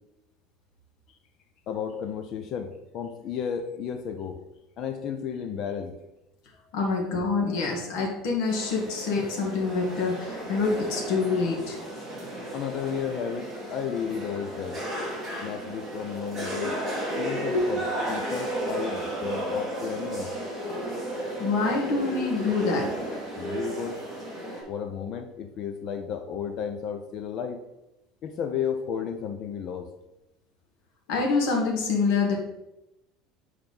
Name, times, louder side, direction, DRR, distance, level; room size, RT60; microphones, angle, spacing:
voice 1, 1.7-4.4 4.8-6.0 12.5-14.8 15.4-16.8 17.1-17.8 18.1-20.3 23.4-24.0 24.7-27.6 28.2-29.9, left 7 dB, 40° left, 7 dB, 0.5 m, -33 dB
voice 2, 6.7-11.8 17.5-17.6 21.4-22.9 31.1-32.4, left 4 dB, 60° left, 0 dB, 1.8 m, -26 dB
sound 1, 8.5-24.6, right 1 dB, ahead, 2.4 m, -34 dB
8.7 x 4.7 x 3.9 m, 0.92 s
cardioid pair, 170°, 0 cm